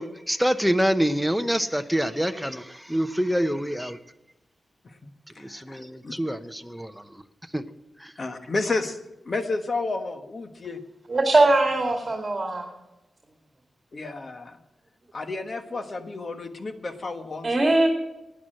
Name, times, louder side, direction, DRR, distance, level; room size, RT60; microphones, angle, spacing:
voice 1, 0.0-4.0 5.4-7.2 7.5-7.6 8.0-8.1, equal, ahead, 10 dB, 0.8 m, -26 dB
voice 2, 5.3-6.2 8.2-9.0 9.2-10.8 13.9-14.6 15.1-17.7, left 3 dB, 45° left, 8 dB, 1.4 m, -31 dB
voice 3, 11.1-12.7 17.4-17.9, right 2 dB, 35° right, 2 dB, 2.2 m, -20 dB
11.0 x 9.7 x 7.7 m, 0.96 s
wide cardioid pair, 85°, 0 cm